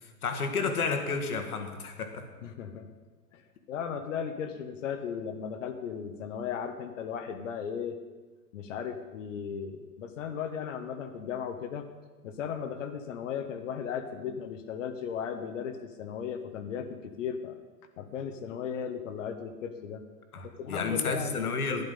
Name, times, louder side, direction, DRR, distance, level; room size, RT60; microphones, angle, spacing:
voice 1, 0.0-2.3 20.3-21.8, left 4 dB, 70° left, 6 dB, 1.8 m, -31 dB
voice 2, 2.4-2.9 3.3-3.4 3.7-8.0 8.5-11.9 12.2-17.6 18.0-20.0 20.4-21.6, left 7 dB, 50° left, 7 dB, 1.2 m, -36 dB
12.0 x 10.5 x 5.4 m, 1.3 s
figure-of-eight pair, 105°, 46 cm